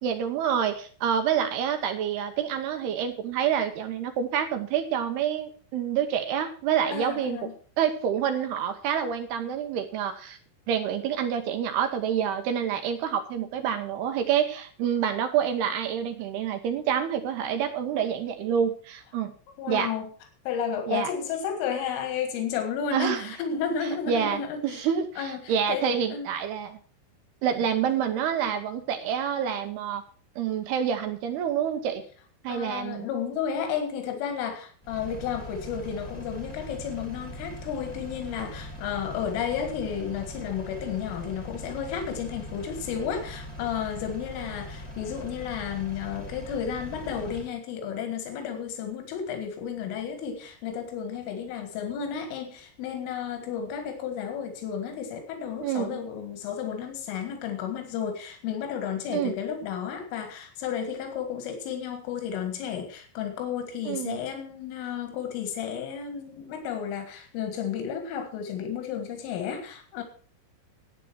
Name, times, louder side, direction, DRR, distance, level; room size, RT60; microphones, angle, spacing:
voice 1, 0.0-7.4 7.8-10.4 10.7-19.3 19.7-19.9 20.9-21.1 22.9-23.2 24.1-26.8 27.4-30.0 30.4-32.0 32.4-33.1 55.6-56.0 59.1-59.3 63.9-64.2, right 8 dB, 75° right, 7 dB, 2.6 m, -27 dB
voice 2, 6.9-7.5 19.6-20.1 20.5-24.9 25.2-26.3 27.6-27.7 32.5-70.0, left 7 dB, 90° left, 6 dB, 4.3 m, -32 dB
Engine, 34.8-47.5, equal, 15° left, 1.2 m, -41 dB
11.5 x 9.0 x 6.1 m, 0.42 s
omnidirectional pair, 5.6 m